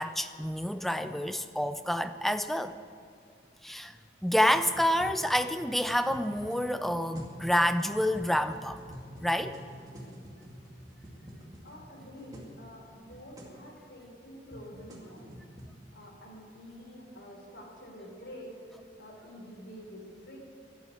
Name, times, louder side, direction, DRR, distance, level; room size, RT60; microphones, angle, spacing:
voice 1, 0.0-2.8 3.6-3.9 4.2-8.8 9.2-9.6, equal, ahead, 10 dB, 0.5 m, -28 dB
sound 1, 4.5-12.5 12.8-12.9 13.1-13.5 14.2-15.7, equal, 20° right, 2.3 m, -48 dB
voice 2, 11.6-15.4 15.9-20.4, equal, 85° left, -3 dB, 4.0 m, -48 dB
13.0 x 11.5 x 8.6 m, 2.3 s
head